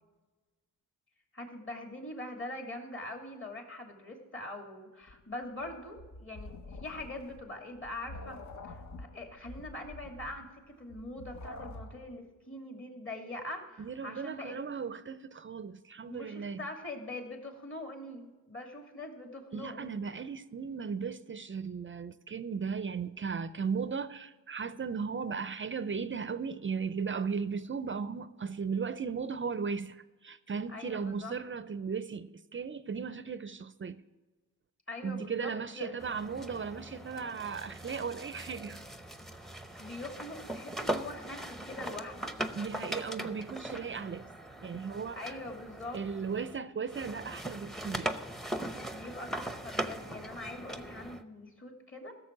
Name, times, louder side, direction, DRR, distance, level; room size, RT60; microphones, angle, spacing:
voice 1, 1.3-8.4 8.6-10.5 10.8-14.6 16.1-20.2 30.7-31.3 34.9-36.0 39.4-42.3 45.2-46.0 48.9-52.1, left 2 dB, 35° left, 2.6 m, -43 dB
sound 1, 5.1-12.2, left 2 dB, 50° left, 1.0 m, -47 dB
voice 2, 13.8-16.7 19.5-34.0 35.0-38.8 42.6-44.3 44.6-45.4 45.9-48.2, right 6 dB, 35° right, 0.5 m, -36 dB
sound 2, 36.0-46.6 46.9-51.2, right 1 dB, ahead, 0.8 m, -40 dB
14.5 x 6.9 x 6.0 m
cardioid pair, 80°, 36 cm